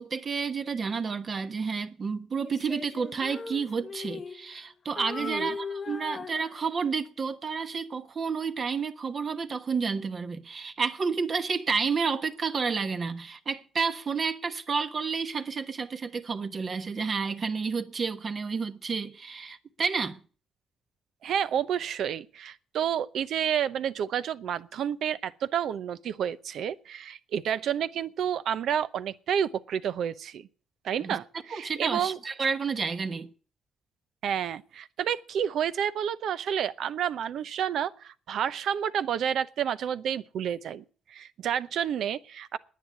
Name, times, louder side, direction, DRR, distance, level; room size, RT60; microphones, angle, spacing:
voice 1, 0.0-20.2 31.0-31.2 31.5-33.3, right 5 dB, 45° right, 1.2 m, -30 dB
Female singing, 2.4-4.6 5.0-7.0, left 5 dB, 40° left, 1.0 m, -39 dB
voice 2, 5.2-5.5 21.2-30.5 30.8-32.2 34.2-42.6, right 9 dB, 70° right, 0.8 m, -30 dB
10.0 x 9.6 x 9.4 m
cardioid pair, 90°, 0 cm